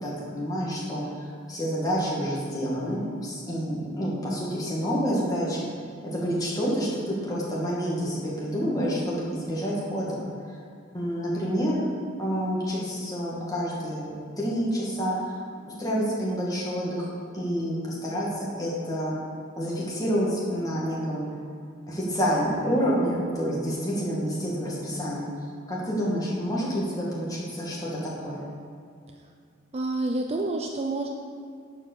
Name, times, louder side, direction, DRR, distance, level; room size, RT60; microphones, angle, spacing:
voice 1, 0.0-5.7 6.1-10.6 10.9-11.8 12.2-15.4 15.8-19.2 19.6-21.2 21.9-28.4, equal, 15° left, -6 dB, 2.2 m, -28 dB
voice 2, 29.7-31.1, right 2 dB, 30° right, 2 dB, 0.5 m, -28 dB
10.5 x 5.1 x 6.9 m, 2.2 s
head